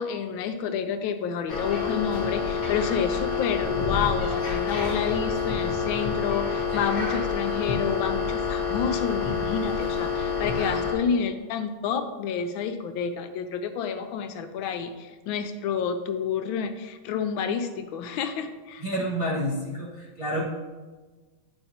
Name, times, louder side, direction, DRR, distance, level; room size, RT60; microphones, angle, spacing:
voice 1, 0.0-18.8, left 7 dB, 80° left, 8 dB, 1.3 m, -29 dB
sound 1, 1.5-10.9, left 5 dB, 35° left, 1.7 m, -28 dB
voice 2, 18.8-20.4, equal, 25° right, -6 dB, 0.8 m, -29 dB
9.7 x 5.3 x 2.8 m, 1.3 s
omnidirectional pair, 2.2 m